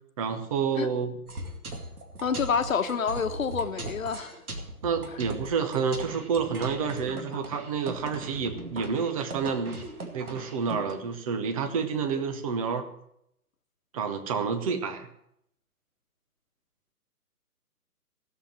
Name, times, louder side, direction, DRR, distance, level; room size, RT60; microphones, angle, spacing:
voice 1, 0.2-1.2 4.8-9.8 10.1-12.9 13.9-15.1, right 6 dB, 20° right, 7 dB, 1.0 m, -29 dB
sound 1, 1.3-10.9, right 2 dB, 65° right, 2.4 m, -39 dB
voice 2, 2.2-4.4, left 6 dB, 55° left, 8 dB, 1.3 m, -28 dB
15.5 x 7.5 x 7.5 m, 0.76 s
figure-of-eight pair, 140°, 47 cm